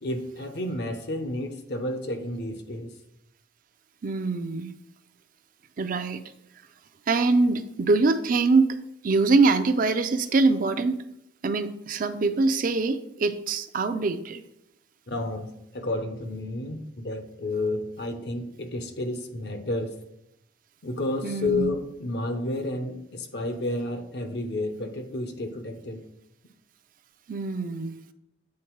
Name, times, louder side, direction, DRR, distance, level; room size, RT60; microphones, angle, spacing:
voice 1, 0.0-2.9 15.1-19.9 20.8-26.0, left 2 dB, 60° left, 7 dB, 0.8 m, -31 dB
voice 2, 4.0-4.7 5.8-6.2 7.1-8.7 9.0-11.0 11.4-14.4 21.2-21.7 27.3-28.0, right 3 dB, 45° right, 10 dB, 0.4 m, -23 dB
8.6 x 3.9 x 4.5 m, 0.81 s
head